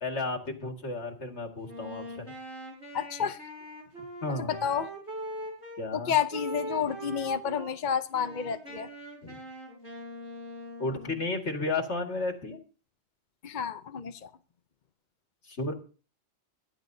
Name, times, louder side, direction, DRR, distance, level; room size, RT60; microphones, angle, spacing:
voice 1, 0.0-2.4 4.2-4.6 5.8-6.1 9.2-9.4 10.8-12.6 15.5-15.7, left 2 dB, 80° left, 2.3 m, -33 dB
Wind instrument woodwind instrument, 1.6-5.8 6.3-7.7 8.1-11.3, right 1 dB, 75° right, 6.2 m, -41 dB
voice 2, 2.9-3.4 4.4-4.9 5.9-8.9 13.4-14.3, left 8 dB, 45° left, 0.8 m, -30 dB
22.5 x 10.5 x 2.7 m
omnidirectional pair, 1.1 m